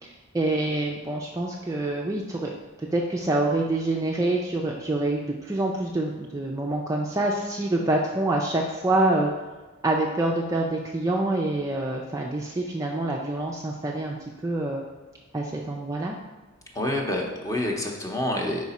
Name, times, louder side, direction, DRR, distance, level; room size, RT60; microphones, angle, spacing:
voice 1, 0.0-2.5 2.9-9.3 9.8-14.2 14.4-14.8 15.3-16.2, right 2 dB, 15° right, -1 dB, 0.3 m, -26 dB
voice 2, 16.7-18.6, left 1 dB, 15° left, 0 dB, 0.7 m, -27 dB
4.9 x 4.7 x 4.1 m, 1.2 s
head